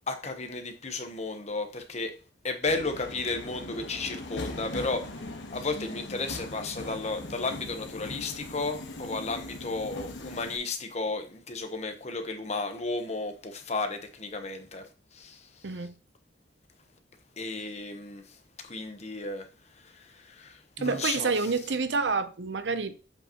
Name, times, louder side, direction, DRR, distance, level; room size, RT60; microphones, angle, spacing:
voice 1, 0.1-2.1 2.4-15.7 17.4-19.5 19.8-21.3, left 3 dB, 35° left, 1.0 m, -34 dB
Subway metro underground, 2.7-10.6, left 2 dB, 70° left, 1.1 m, -40 dB
voice 2, 15.6-15.9 20.8-23.0, right 4 dB, 70° right, 0.6 m, -28 dB
7.8 x 5.5 x 2.9 m
head